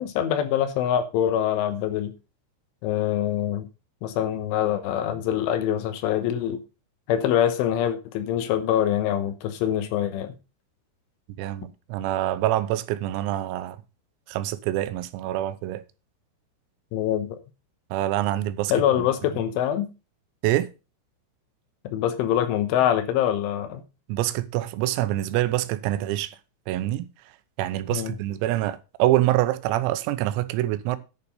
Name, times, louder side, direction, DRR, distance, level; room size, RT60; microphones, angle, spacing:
voice 1, 0.0-2.1 2.8-3.7 4.0-6.6 7.1-10.3 16.9-17.3 18.7-19.9 21.8-23.8 27.9-28.2, left 10 dB, 75° left, 3.3 m, -24 dB
voice 2, 11.4-13.8 14.3-15.8 17.9-18.7 20.4-20.7 24.1-26.4 26.7-27.1 27.6-31.0, right 14 dB, 90° right, 3.6 m, -25 dB
10.5 x 6.8 x 5.4 m
omnidirectional pair, 6.0 m